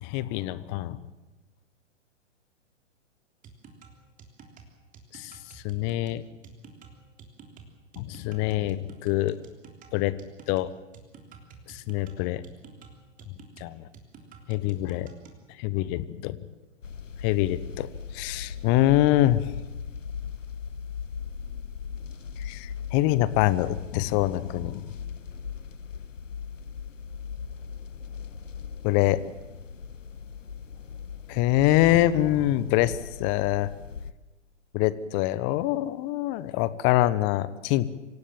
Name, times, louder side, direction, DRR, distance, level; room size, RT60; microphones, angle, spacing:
voice 1, 0.0-1.0 5.1-5.3 5.6-6.2 8.0-9.4 9.9-10.2 10.5-10.7 11.7-12.4 13.6-13.9 14.5-15.1 15.6-16.4 17.2-17.9 18.1-19.5 22.4-24.8 28.8-29.2 31.3-33.7 34.7-37.9, left 15 dB, 30° left, 17 dB, 1.1 m, -25 dB
sound 1, 3.4-15.4, right 5 dB, 20° right, 3.4 m, -50 dB
sound 2, 16.8-34.1, left 6 dB, 80° left, 1.1 m, -39 dB
26.0 x 17.5 x 7.4 m, 1.2 s
figure-of-eight pair, 115°, 37 cm